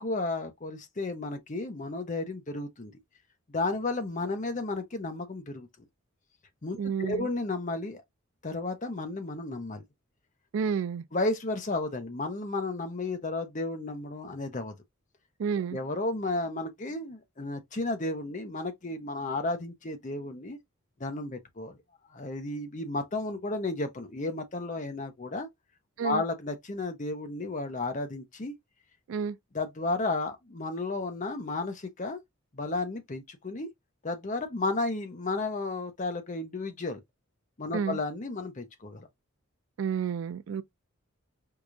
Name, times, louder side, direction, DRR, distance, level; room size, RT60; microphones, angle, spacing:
voice 1, 0.0-2.9 3.5-5.7 6.6-8.0 8.4-9.8 11.1-14.7 15.7-20.6 21.0-21.8 22.1-25.5 26.0-28.5 29.5-32.2 32.5-33.7 34.0-37.0 37.6-39.1, left 2 dB, 35° left, 0.7 m, -33 dB
voice 2, 6.8-7.3 10.5-11.0 15.4-15.8 26.0-26.2 29.1-29.4 37.7-38.0 39.8-40.6, right 6 dB, 70° right, 0.3 m, -30 dB
4.7 x 2.4 x 2.5 m
head